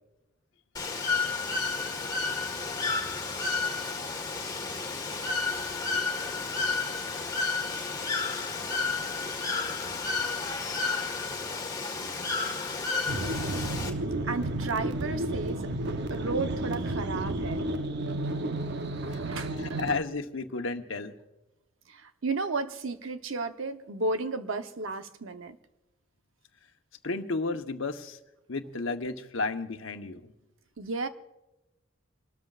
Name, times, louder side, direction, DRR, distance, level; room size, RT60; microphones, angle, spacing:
Bird / Water, 0.7-13.9, left 4 dB, 20° left, 1.6 m, -31 dB
sound 1, 13.1-20.0, right 1 dB, 60° right, 0.8 m, -32 dB
voice 1, 14.2-15.7 16.1-17.6 18.2-18.3 19.0-19.8 21.9-25.6 30.8-31.1, right 3 dB, 85° right, 8 dB, 0.9 m, -33 dB
voice 2, 19.6-21.1 27.0-28.2 28.5-30.3, left 3 dB, 80° left, 7 dB, 1.0 m, -33 dB
28.0 x 13.0 x 2.5 m, 1.0 s
head